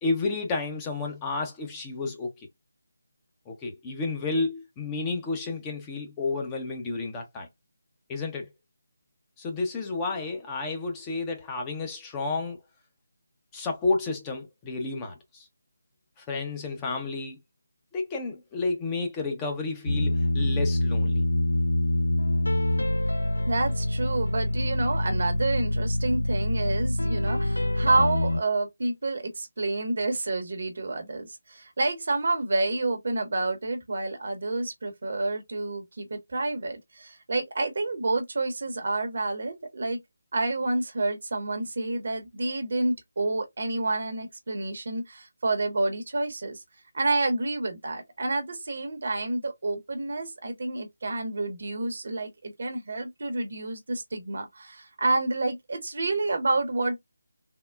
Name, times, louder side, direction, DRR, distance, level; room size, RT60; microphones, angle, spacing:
voice 1, 0.0-2.3 3.5-7.5 8.1-8.5 9.4-12.6 13.5-15.5 16.2-17.4 17.9-21.2, left 3 dB, 15° left, 0.6 m, -31 dB
sound 1, 19.9-28.4, left 1 dB, 85° left, 0.4 m, -25 dB
voice 2, 23.5-40.0 40.3-46.6 46.9-57.0, right 2 dB, 55° right, 0.9 m, -29 dB
3.6 x 2.0 x 2.3 m
figure-of-eight pair, 160°, 0 cm